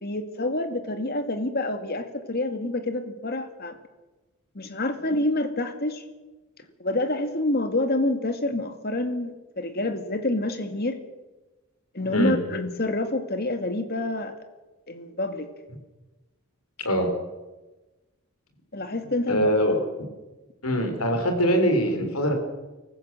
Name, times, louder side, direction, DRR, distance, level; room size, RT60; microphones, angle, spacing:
voice 1, 0.0-3.8 4.5-6.0 6.8-11.0 11.9-14.4 14.9-15.5 18.7-19.5, left 2 dB, 45° left, 8 dB, 2.2 m, -27 dB
voice 2, 19.3-19.8 20.6-22.3, equal, 85° left, 6 dB, 4.5 m, -22 dB
24.0 x 15.0 x 7.8 m, 1.2 s
head